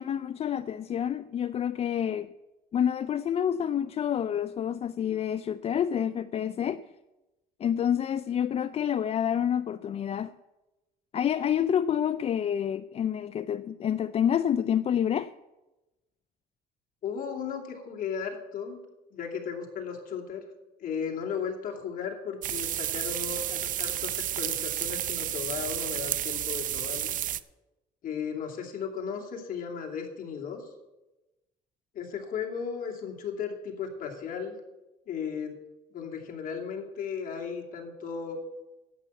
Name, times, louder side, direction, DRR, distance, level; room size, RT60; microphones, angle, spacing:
voice 1, 0.0-2.3 2.7-6.8 7.6-10.3 11.1-15.3, left 9 dB, 35° left, 0.3 m, -28 dB
voice 2, 17.0-18.8 19.1-20.4 20.8-27.1 28.0-30.7 31.9-34.5 35.1-35.5 35.9-38.4, left 6 dB, 55° left, 2.5 m, -35 dB
sound 1, 22.4-27.4, right 11 dB, 50° right, 0.5 m, -31 dB
11.0 x 8.3 x 7.1 m
cardioid pair, 110°, 17 cm